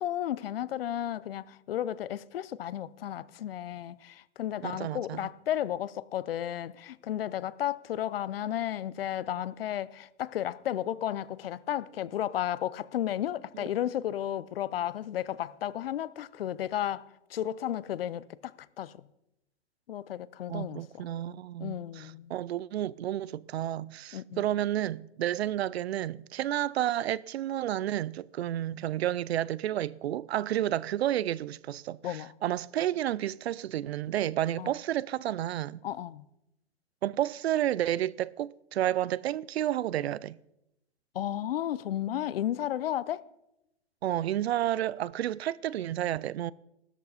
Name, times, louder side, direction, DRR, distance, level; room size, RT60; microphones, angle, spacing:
voice 1, 0.0-17.0 17.3-18.9 19.9-21.1 21.6-22.3 24.1-24.5 32.0-32.3 34.6-34.7 35.8-36.2 41.1-43.2, left 11 dB, 60° left, 0.6 m, -33 dB
voice 2, 4.6-5.3 13.5-13.6 20.5-35.8 37.0-40.4 44.0-46.5, right 12 dB, 65° right, 0.5 m, -31 dB
14.0 x 13.0 x 4.2 m
hypercardioid pair, 160°, 34 cm